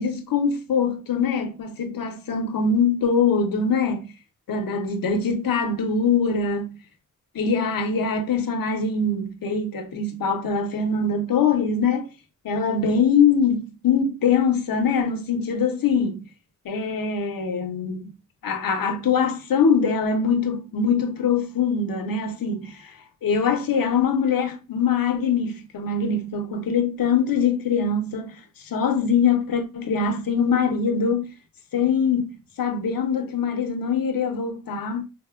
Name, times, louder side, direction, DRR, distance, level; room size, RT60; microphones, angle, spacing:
voice 1, 0.0-4.1 4.5-6.7 7.3-12.1 12.4-16.3 16.6-18.1 18.4-22.9 23.2-28.4 28.7-31.3 31.7-35.0, left 5 dB, 85° left, 0.6 m, -23 dB
4.0 x 2.0 x 2.3 m
cardioid pair, 60°, 34 cm